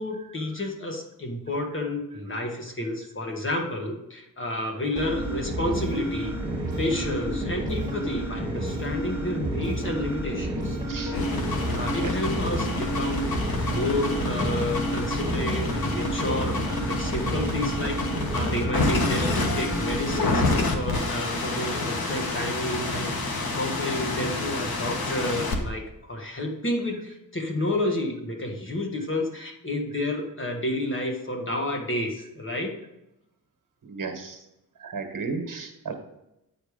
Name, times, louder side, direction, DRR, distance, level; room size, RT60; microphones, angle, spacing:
voice 1, 0.0-6.3 6.8-11.3 11.7-18.0 18.3-32.8, left 1 dB, 35° left, 1 dB, 1.5 m, -30 dB
sound 1, 5.0-20.6, right 1 dB, 10° right, 1.9 m, -30 dB
sound 2, 11.1-25.6, left 3 dB, 85° left, 1.3 m, -29 dB
voice 2, 33.8-34.4 34.8-36.0, right 4 dB, 65° right, 4 dB, 1.4 m, -34 dB
8.8 x 4.9 x 5.0 m, 0.89 s
wide cardioid pair, 125°, 35 cm